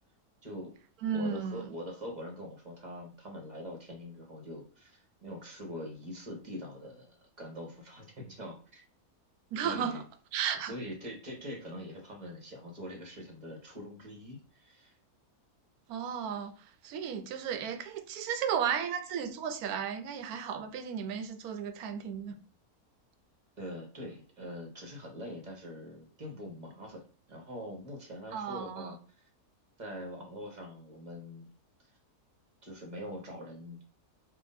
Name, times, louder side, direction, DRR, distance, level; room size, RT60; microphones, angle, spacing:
voice 1, 0.4-0.8 1.1-8.8 9.6-10.0 10.6-15.0 23.6-27.0 27.3-29.3 29.8-31.5 32.6-33.8, equal, 35° right, 0.9 m, -43 dB
voice 2, 1.0-1.6 9.5-10.0 10.3-10.7 15.9-16.5 16.8-22.3 28.3-28.9, right 7 dB, 75° right, 1.1 m, -34 dB
3.7 x 2.5 x 3.9 m
omnidirectional pair, 1.6 m